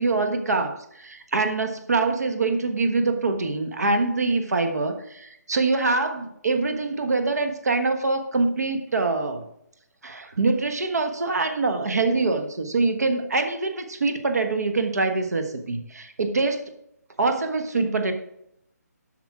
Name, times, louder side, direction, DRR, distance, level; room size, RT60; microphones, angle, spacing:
voice 1, 0.0-9.4 10.0-16.6 17.2-18.1, right 3 dB, 65° right, 6 dB, 1.3 m, -24 dB
8.1 x 6.2 x 4.8 m, 0.76 s
hypercardioid pair, 175°, 9 cm